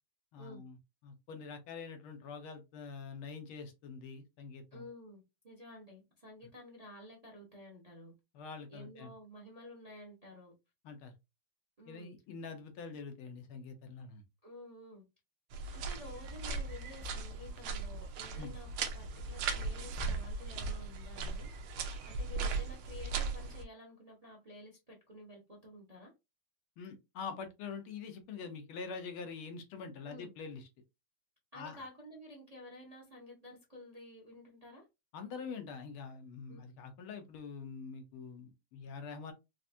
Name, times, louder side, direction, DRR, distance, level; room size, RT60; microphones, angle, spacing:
voice 1, 0.3-0.8 1.0-4.8 8.3-9.1 10.8-11.1 11.9-14.2 18.4-18.5 26.8-30.7 31.5-31.9 35.1-39.3, left 5 dB, 80° left, 1.7 m, -45 dB
voice 2, 4.7-8.1 8.7-10.5 11.8-12.1 14.4-15.0 15.7-21.5 22.0-26.1 30.1-30.3 31.5-34.9 36.5-36.6, left 1 dB, 30° right, 0.7 m, -52 dB
sound 1, 15.5-23.6, right 4 dB, 80° right, 1.5 m, -38 dB
4.7 x 2.6 x 2.6 m
omnidirectional pair, 2.3 m